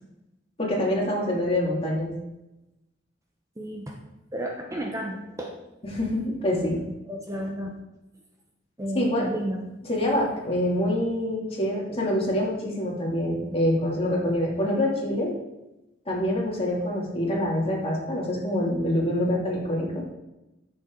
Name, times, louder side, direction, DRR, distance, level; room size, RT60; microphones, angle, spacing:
voice 1, 0.6-2.1 5.8-6.8 8.9-9.3 9.8-15.3 16.1-20.1, left 1 dB, 30° left, -3 dB, 2.9 m, -26 dB
voice 2, 3.6-3.9 4.3-5.5 7.1-7.8 8.8-9.6, equal, 15° right, 0 dB, 1.0 m, -32 dB
14.5 x 7.0 x 4.0 m, 0.96 s
head